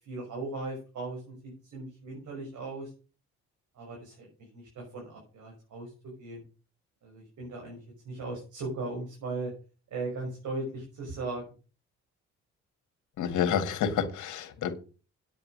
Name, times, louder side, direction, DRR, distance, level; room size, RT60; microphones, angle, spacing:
voice 1, 0.0-2.9 3.7-5.9 6.2-6.4 7.0-9.5 9.9-11.4, right 2 dB, 70° right, 6.2 m, -38 dB
voice 2, 13.2-14.7, left 8 dB, 75° left, 2.2 m, -29 dB
9.3 x 8.7 x 6.5 m
cardioid pair, 90°, 30 cm